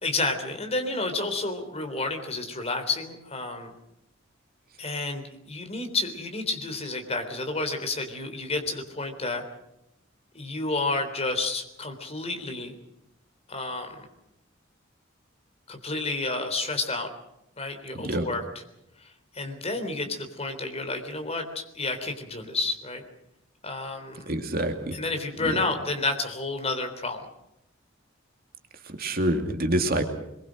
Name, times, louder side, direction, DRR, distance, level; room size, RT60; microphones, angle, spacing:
voice 1, 0.0-3.7 4.8-9.4 10.3-12.7 13.5-13.9 15.7-17.1 17.6-18.4 19.3-23.0 23.6-24.3 24.9-27.3, left 3 dB, 30° left, 5 dB, 3.6 m, -30 dB
voice 2, 24.3-24.9 25.4-25.6 29.0-30.0, right 1 dB, 45° right, 5 dB, 2.6 m, -26 dB
25.0 x 22.5 x 6.4 m, 0.83 s
head